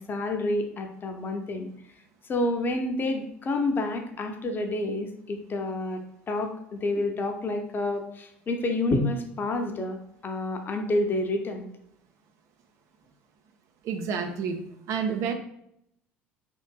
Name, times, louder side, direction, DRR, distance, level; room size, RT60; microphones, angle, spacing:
voice 1, 0.0-1.7 2.3-6.0 6.3-10.0 10.2-11.7, left 2 dB, 30° left, 5 dB, 0.5 m, -29 dB
voice 2, 13.8-15.3, right 6 dB, 50° right, 5 dB, 0.4 m, -29 dB
3.7 x 2.5 x 2.3 m, 0.75 s
figure-of-eight pair, 60°, 7 cm